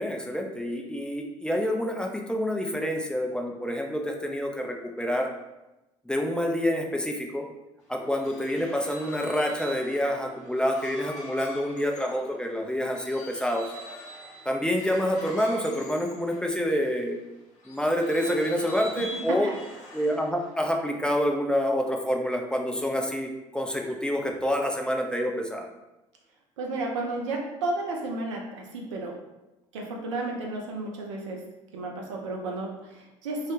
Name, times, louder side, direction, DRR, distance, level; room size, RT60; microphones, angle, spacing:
voice 1, 0.0-5.3 6.1-7.5 7.9-13.7 14.5-17.2 17.7-19.5 19.9-25.7, equal, 5° left, 2 dB, 0.4 m, -27 dB
sound 1, 7.8-17.0 17.6-20.6, equal, 50° left, 0.6 m, -44 dB
voice 2, 19.0-19.6 26.6-29.2 29.7-31.4 31.7-33.5, right 2 dB, 85° right, 0 dB, 0.5 m, -32 dB
2.3 x 2.1 x 3.0 m, 0.99 s
hypercardioid pair, 60°, 15 cm